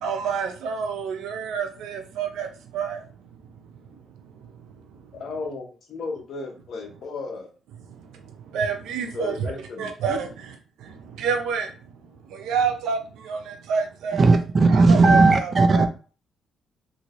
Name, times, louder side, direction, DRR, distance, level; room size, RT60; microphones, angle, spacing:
voice 1, 0.0-3.0 8.5-9.5 9.8-10.5 10.8-11.7 12.3-14.3 14.7-15.9, right 6 dB, 85° right, 0.6 m, -28 dB
voice 2, 5.1-7.5 9.1-10.3, left 3 dB, 65° left, 1.0 m, -34 dB
voice 3, 14.2-15.9, right 3 dB, 40° right, 0.6 m, -16 dB
2.8 x 2.7 x 3.0 m
cardioid pair, 90°, 0 cm